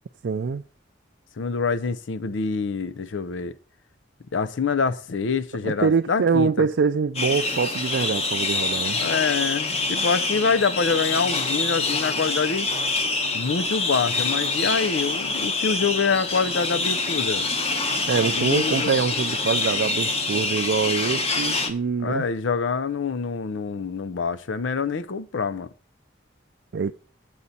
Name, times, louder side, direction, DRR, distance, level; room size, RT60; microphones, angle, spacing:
voice 1, 0.2-0.6 5.6-9.0 18.1-22.3 26.7-26.9, right 5 dB, 65° right, 0.4 m, -24 dB
voice 2, 1.4-3.6 4.3-6.7 8.9-12.7 13.3-17.5 18.3-18.9 22.0-25.7, left 5 dB, 85° left, 0.6 m, -26 dB
sound 1, 7.1-21.7, left 3 dB, 35° left, 1.0 m, -26 dB
8.5 x 7.9 x 4.0 m
head